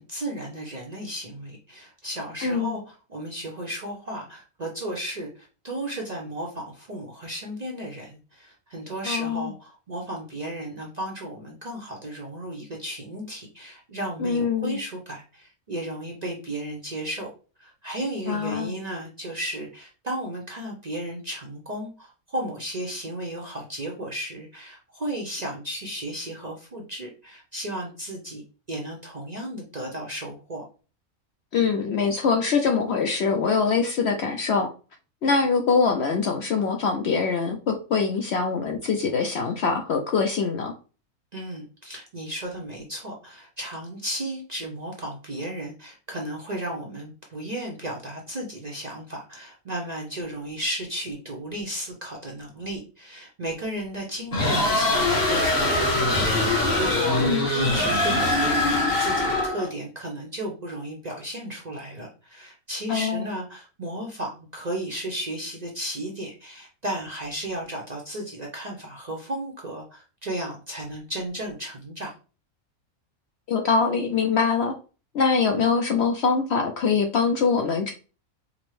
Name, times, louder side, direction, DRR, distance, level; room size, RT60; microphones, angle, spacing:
voice 1, 0.0-17.3 17.6-28.4 28.7-30.6 41.3-72.1, right 1 dB, 40° right, -1 dB, 0.6 m, -34 dB
voice 2, 2.4-2.8 9.0-9.4 14.2-14.8 18.3-18.7 31.5-34.7 35.2-40.7 57.2-57.5 62.9-63.3 73.5-74.7 75.1-77.9, left 5 dB, 65° left, 3 dB, 0.7 m, -23 dB
sound 1, 54.3-59.7, left 2 dB, 45° left, 1.3 m, -22 dB
5.1 x 2.0 x 3.1 m, 0.35 s
omnidirectional pair, 1.5 m